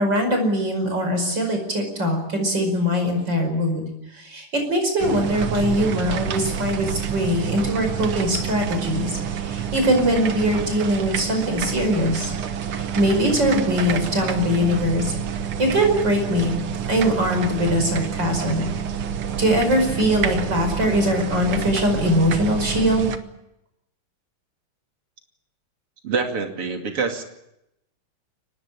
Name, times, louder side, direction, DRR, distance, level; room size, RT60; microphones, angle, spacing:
voice 1, 0.0-3.9 4.1-12.3 12.7-15.1 15.6-16.6 16.9-18.7 19.4-23.1, equal, 50° right, 4 dB, 5.9 m, -22 dB
sound 1, 5.0-23.2, right 8 dB, 75° right, 2.1 m, -28 dB
voice 2, 26.0-27.2, right 4 dB, 90° right, 4 dB, 3.5 m, -25 dB
24.0 x 19.0 x 8.8 m, 0.87 s
omnidirectional pair, 2.4 m